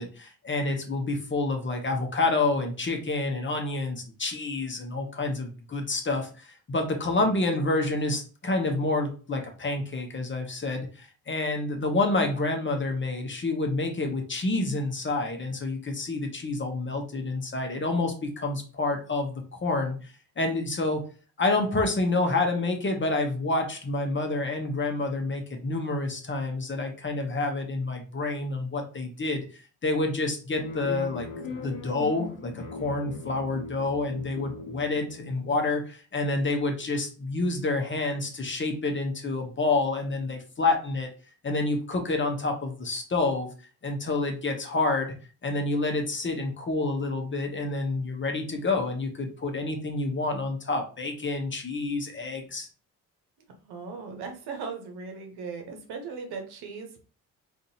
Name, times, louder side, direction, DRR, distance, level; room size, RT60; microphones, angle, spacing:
voice 1, 0.0-21.1 21.4-31.3 31.6-41.1 41.4-43.5 43.8-45.1 45.4-52.7, left 2 dB, 25° left, 3 dB, 0.9 m, -28 dB
sound 1, 30.6-35.7, left 3 dB, 55° left, 0.9 m, -39 dB
voice 2, 53.6-57.1, right 5 dB, 60° right, 4 dB, 1.0 m, -38 dB
3.8 x 2.6 x 2.8 m, 0.37 s
hypercardioid pair, 45°, 42 cm